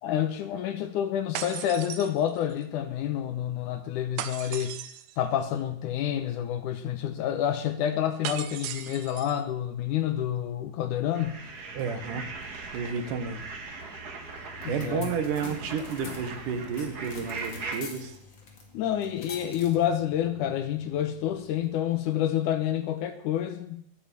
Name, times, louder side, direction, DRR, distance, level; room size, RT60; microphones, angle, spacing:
voice 1, 0.0-4.8 5.2-11.4 14.6-15.1 18.7-23.8, left 10 dB, 75° left, 9 dB, 2.0 m, -28 dB
sound 1, 1.4-2.6 4.2-5.2 8.2-9.4, right 11 dB, 85° right, 2.6 m, -37 dB
sound 2, 11.1-17.8, right 4 dB, 50° right, 1.2 m, -40 dB
voice 2, 11.7-12.3 12.7-13.4 14.7-18.2, right 6 dB, 65° right, 7 dB, 2.6 m, -31 dB
sound 3, 14.4-21.8, left 4 dB, 35° left, 2.3 m, -46 dB
11.5 x 8.5 x 8.3 m, 0.71 s
omnidirectional pair, 4.3 m